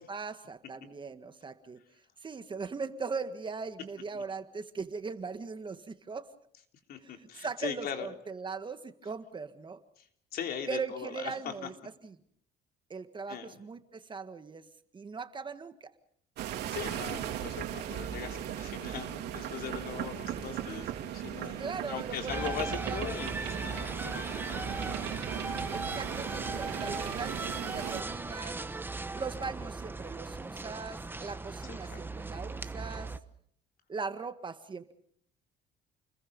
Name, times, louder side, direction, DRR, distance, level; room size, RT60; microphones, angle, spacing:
voice 1, 0.0-1.8 2.2-6.3 7.0-9.8 10.7-11.7 12.0-12.1 12.9-15.9 21.6-23.0 25.7-28.6 29.1-33.1 33.9-34.9, right 5 dB, 30° right, 10 dB, 1.7 m, -40 dB
voice 2, 6.9-8.1 10.0-11.7 13.3-13.6 16.7-25.5 25.8-25.9 31.7-32.1, left 8 dB, 65° left, 5 dB, 3.7 m, -40 dB
sound 1, 16.4-28.0, right 11 dB, 80° right, 3.3 m, -37 dB
sound 2, 22.3-33.2, right 3 dB, 10° right, 1.1 m, -38 dB
29.5 x 21.5 x 5.4 m, 0.65 s
cardioid pair, 110°, 17 cm